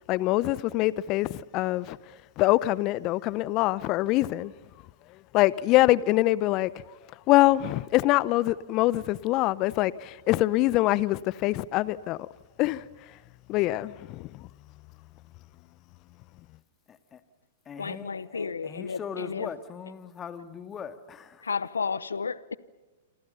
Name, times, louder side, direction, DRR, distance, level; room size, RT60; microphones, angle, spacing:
voice 1, 0.1-2.0 2.4-4.5 5.3-6.7 7.3-12.3 12.6-12.8 13.5-14.4, left 17 dB, 40° left, 0.8 m, -24 dB
voice 2, 16.9-17.2 17.7-21.5, left 7 dB, 25° left, 2.2 m, -40 dB
voice 3, 17.8-19.5 21.4-22.6, left 5 dB, 85° left, 0.9 m, -32 dB
28.0 x 27.0 x 5.6 m
hypercardioid pair, 105°, 0 cm